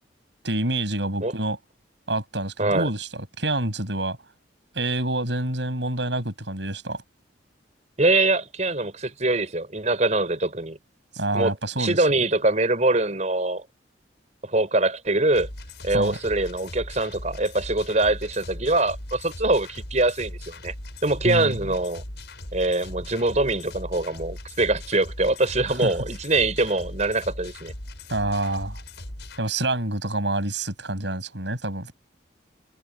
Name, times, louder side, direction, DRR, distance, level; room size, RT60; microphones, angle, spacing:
voice 1, 0.4-1.6 2.1-4.2 4.7-7.0 11.1-12.1 15.9-16.2 21.2-21.6 25.8-25.9 28.1-28.8 29.4-31.9, right 2 dB, 70° right, 7.6 m, -27 dB
voice 2, 2.6-2.9 8.0-10.8 11.3-13.6 14.4-15.5 15.8-20.7 21.0-22.0 22.5-27.7, right 2 dB, 40° right, 5.7 m, -23 dB
sound 1, 15.3-29.4, left 1 dB, 65° left, 6.1 m, -39 dB
head